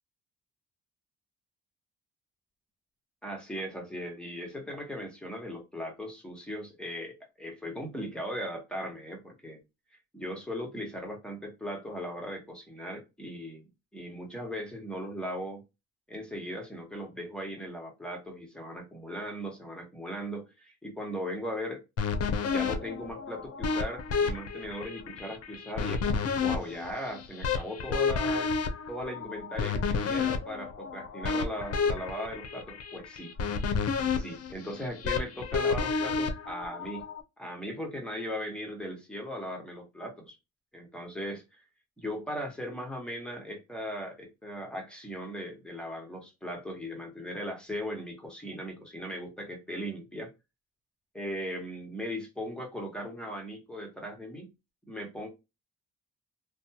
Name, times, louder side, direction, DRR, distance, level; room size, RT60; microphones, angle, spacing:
voice 1, 3.2-9.6 10.1-13.6 13.9-15.6 16.1-21.8 22.4-28.5 28.9-33.3 33.8-37.1 37.4-40.4 40.7-41.4 42.0-50.3 51.1-54.5 54.9-55.3, equal, 5° left, 1.1 m, -38 dB
sound 1, 22.0-37.2, left 5 dB, 55° left, 0.6 m, -31 dB
2.6 x 2.3 x 2.7 m
cardioid pair, 90°, 30 cm